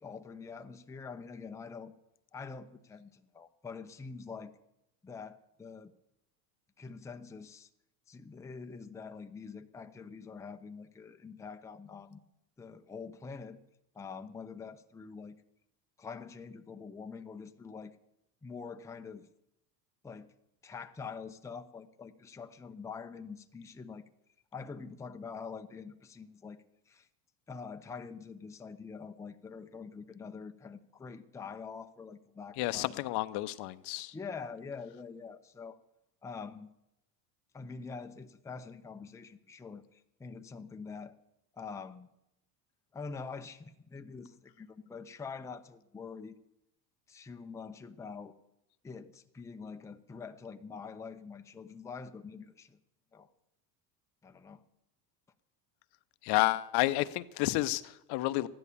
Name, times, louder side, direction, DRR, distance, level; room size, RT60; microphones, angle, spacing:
voice 1, 0.0-1.9 2.3-4.5 5.0-5.9 6.8-7.7 8.1-12.2 12.6-13.6 13.9-15.4 16.0-18.0 18.4-19.3 20.0-20.3 20.6-24.0 24.5-27.1 27.5-33.0 34.1-35.8 36.2-36.7 37.5-41.2 41.5-42.1 42.9-46.4 47.1-48.3 48.8-52.8 53.1-53.3 54.2-54.6, left 5 dB, 5° left, 0.6 m, -45 dB
voice 2, 32.6-34.2 56.2-58.5, left 18 dB, 55° left, 0.7 m, -30 dB
14.5 x 11.0 x 6.9 m
supercardioid pair, 105°, 48 cm